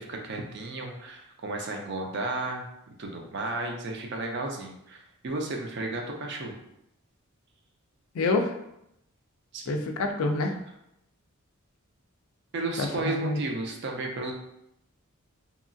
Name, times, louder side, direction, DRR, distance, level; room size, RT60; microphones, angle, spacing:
voice 1, 0.0-2.6 3.0-6.5 9.5-9.8 12.5-14.3, right 2 dB, 50° right, 2 dB, 0.5 m, -33 dB
voice 2, 8.1-8.5 9.7-10.6 12.8-13.4, left 3 dB, 70° left, 4 dB, 0.4 m, -27 dB
2.8 x 2.3 x 2.5 m, 0.80 s
head